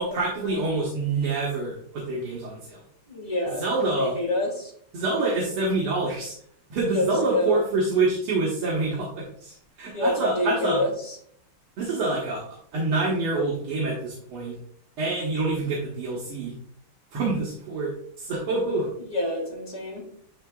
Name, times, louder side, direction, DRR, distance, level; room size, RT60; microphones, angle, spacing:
voice 1, 0.0-2.8 3.6-4.2 4.9-6.4 6.7-10.9 11.8-14.6 15.0-16.5 17.1-18.9, right 3 dB, 80° right, -4 dB, 2.1 m, -26 dB
voice 2, 3.1-3.6 3.9-4.7 6.9-7.6 9.8-10.9 19.1-20.0, left 2 dB, 35° left, -2 dB, 1.9 m, -27 dB
11.0 x 3.7 x 2.3 m, 0.63 s
omnidirectional pair, 2.4 m